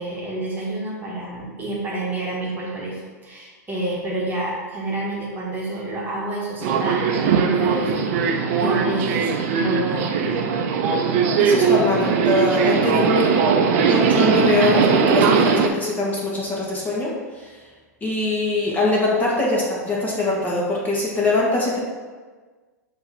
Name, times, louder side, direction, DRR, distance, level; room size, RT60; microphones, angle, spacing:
voice 1, 0.0-10.4, right 2 dB, 20° right, -5 dB, 1.7 m, -29 dB
Subway metro underground, 6.6-15.7, right 6 dB, 50° right, 0.7 m, -19 dB
voice 2, 11.4-13.3 13.9-17.1 17.4-17.5 18.0-21.8, left 2 dB, 20° left, -5 dB, 1.7 m, -22 dB
8.4 x 3.1 x 4.3 m, 1.4 s
hypercardioid pair, 100°, 9 cm